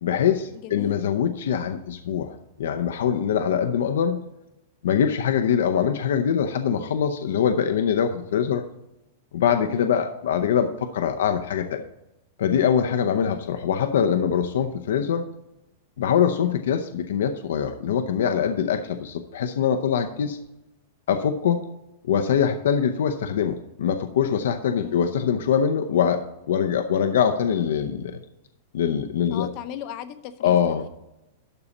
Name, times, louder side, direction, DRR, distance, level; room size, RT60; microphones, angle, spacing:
voice 1, 0.0-4.2 4.8-8.6 9.3-11.8 12.4-15.2 16.0-20.4 21.1-21.6 22.0-28.2 28.7-29.5 30.4-30.9, left 8 dB, 75° left, 7 dB, 0.7 m, -23 dB
voice 2, 0.5-1.0 9.7-9.9 13.3-13.5 24.8-25.0 29.3-30.9, left 10 dB, 30° left, 11 dB, 0.7 m, -37 dB
12.0 x 4.1 x 7.1 m, 0.90 s
supercardioid pair, 175°, 0 cm